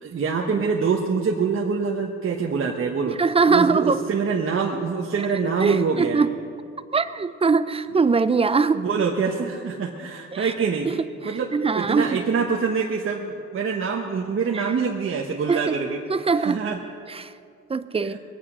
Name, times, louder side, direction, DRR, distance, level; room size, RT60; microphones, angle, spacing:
voice 1, 0.0-3.2 3.5-6.2 8.7-10.9 11.2-16.0 16.3-16.8 18.0-18.2, right 5 dB, 45° right, 0 dB, 1.2 m, -25 dB
voice 2, 3.1-4.0 5.6-6.3 6.9-8.9 10.3-10.5 11.2-12.2 14.5-14.6 15.5-15.8 16.1-16.6 17.1-17.3 17.7-18.2, right 4 dB, 20° right, 13 dB, 0.6 m, -21 dB
21.5 x 8.9 x 6.3 m, 2.4 s
cardioid pair, 90°, 30 cm